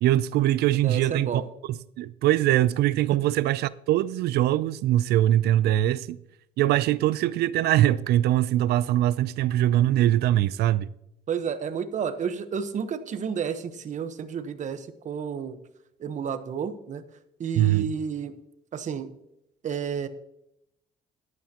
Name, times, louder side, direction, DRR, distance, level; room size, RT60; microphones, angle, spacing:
voice 1, 0.0-6.2 6.6-10.9 17.5-17.9, right 13 dB, 75° right, 0.4 m, -22 dB
voice 2, 0.8-1.4 11.3-15.6 16.0-17.0 17.4-18.3 18.7-19.1 19.6-20.1, right 7 dB, 45° right, 1.1 m, -31 dB
14.0 x 11.5 x 2.9 m
cardioid pair, 110°, 17 cm